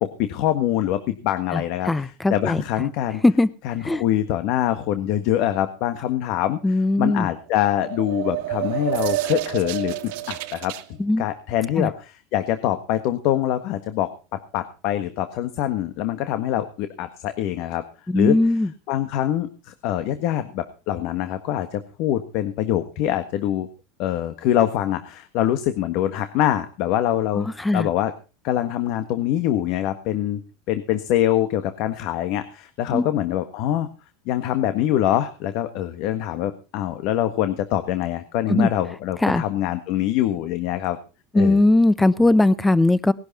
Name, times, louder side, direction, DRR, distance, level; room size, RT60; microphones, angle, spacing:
voice 1, 0.0-3.2 3.6-6.6 7.0-14.1 14.5-17.8 18.1-18.3 18.9-23.7 24.0-28.1 28.4-30.4 30.7-33.9 34.2-41.0 41.3-41.6, left 12 dB, 60° left, 10 dB, 1.5 m, -24 dB
voice 2, 1.5-2.6 3.2-3.5 3.8-4.0 6.6-7.3 11.0-11.3 11.8-11.9 18.1-18.7 27.4-27.9 32.9-33.1 38.5-38.7 39.2-39.4 41.3-43.1, left 2 dB, 10° left, 18 dB, 0.9 m, -19 dB
sound 1, 7.5-10.8, right 17 dB, 70° right, 1.6 m, -28 dB
19.0 x 11.5 x 4.2 m, 0.33 s
supercardioid pair, 130°, 0 cm